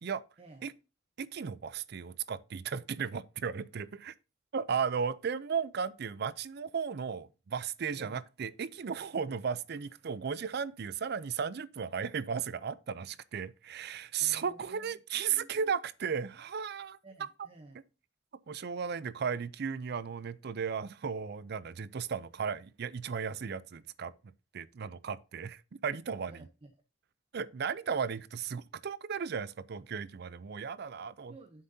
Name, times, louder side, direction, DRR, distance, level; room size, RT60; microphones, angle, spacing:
voice 1, 0.4-0.7 7.9-8.2 14.2-15.7 17.0-17.8 26.3-26.7 31.3-31.6, right 2 dB, 30° right, 0.8 m, -54 dB
voice 2, 1.2-4.1 4.5-17.0 18.5-24.1 24.5-26.5 27.3-31.3, right 6 dB, 60° right, 0.5 m, -35 dB
9.3 x 7.5 x 2.7 m
head